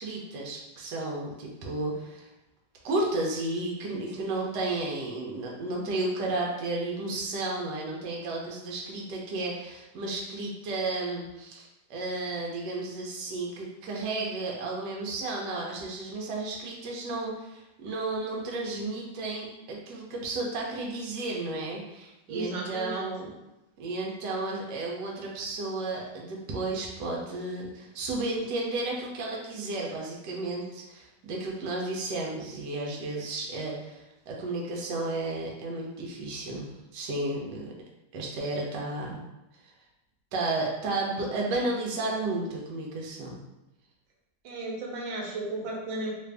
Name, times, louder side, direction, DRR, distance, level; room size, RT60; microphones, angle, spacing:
voice 1, 0.0-2.3 2.8-23.3 23.8-37.7 38.1-39.2 40.3-43.4, right 2 dB, 70° right, -2 dB, 1.2 m, -33 dB
voice 2, 22.3-23.0 44.4-46.1, right 2 dB, 90° right, -2 dB, 1.4 m, -34 dB
3.1 x 2.5 x 3.3 m, 0.94 s
omnidirectional pair, 2.0 m